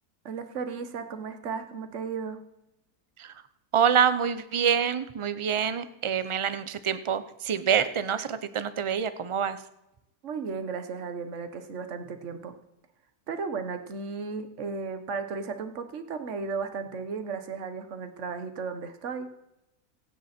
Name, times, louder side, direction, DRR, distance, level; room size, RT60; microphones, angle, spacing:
voice 1, 0.2-2.4 10.2-12.5 13.3-19.3, right 5 dB, 55° right, 8 dB, 1.5 m, -35 dB
voice 2, 3.7-9.6, right 8 dB, 30° right, 12 dB, 0.6 m, -26 dB
25.5 x 9.3 x 4.4 m, 0.87 s
omnidirectional pair, 1.6 m